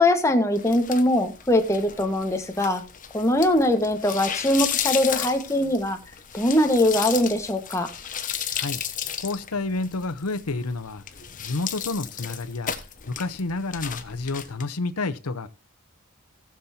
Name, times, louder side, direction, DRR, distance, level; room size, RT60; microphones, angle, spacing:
voice 1, 0.0-2.8 3.1-6.0 6.3-7.9, left 1 dB, 15° left, 1.5 m, -22 dB
sound 1, 0.5-14.6, left 9 dB, 35° left, 1.3 m, -34 dB
voice 2, 9.2-11.0 11.4-12.7 13.1-15.5, left 3 dB, 90° left, 0.9 m, -29 dB
18.5 x 7.3 x 2.8 m
head